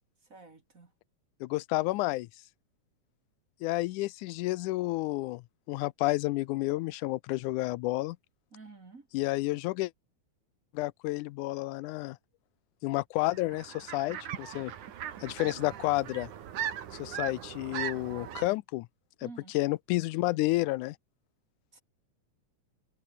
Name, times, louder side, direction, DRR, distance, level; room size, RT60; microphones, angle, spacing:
voice 1, 0.2-0.9 8.5-9.1 19.2-19.6 21.7-21.8, right 4 dB, 30° right, 2.4 m, -50 dB
voice 2, 1.4-2.3 3.6-8.2 9.1-9.9 10.7-12.2 12.8-14.7 15.2-16.3 16.9-18.9 19.5-21.0, left 19 dB, 90° left, 2.1 m, -30 dB
sound 1, 13.2-18.5, right 10 dB, 80° right, 3.4 m, -39 dB
omnidirectional pair, 3.4 m